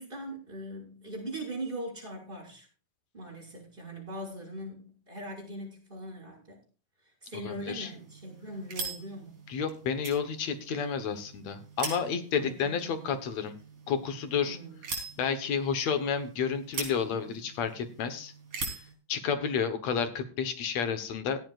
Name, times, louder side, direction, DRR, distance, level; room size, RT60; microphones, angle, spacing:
voice 1, 0.0-2.7 3.1-6.6 7.0-9.4 12.4-13.1 14.4-14.8, right 1 dB, 15° right, -2 dB, 6.2 m, -41 dB
voice 2, 7.3-7.9 9.5-13.6 13.9-14.6 15.2-18.3 19.1-21.4, left 6 dB, 65° left, 9 dB, 2.2 m, -31 dB
sound 1, 7.6-18.9, right 4 dB, 55° right, 5.2 m, -43 dB
17.5 x 12.5 x 2.5 m, 0.38 s
omnidirectional pair, 3.7 m